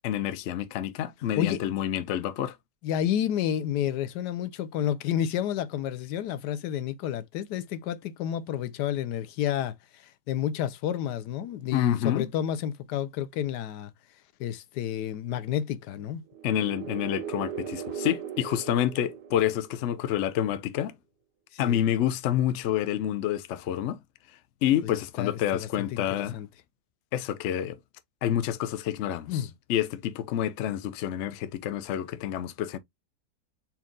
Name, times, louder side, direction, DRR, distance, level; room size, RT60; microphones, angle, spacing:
voice 1, 0.0-2.6 11.7-12.3 16.4-20.9 21.6-24.0 24.6-26.4 27.1-27.8 28.2-32.8, left 11 dB, 65° left, 0.7 m, -28 dB
voice 2, 2.8-13.9 14.4-16.2 21.5-21.8 24.8-24.9 25.2-26.5 29.3-29.5, left 10 dB, 85° left, 1.2 m, -30 dB
sound 1, 16.3-20.1, right 8 dB, 90° right, 1.3 m, -38 dB
4.4 x 2.3 x 3.7 m
omnidirectional pair, 1.7 m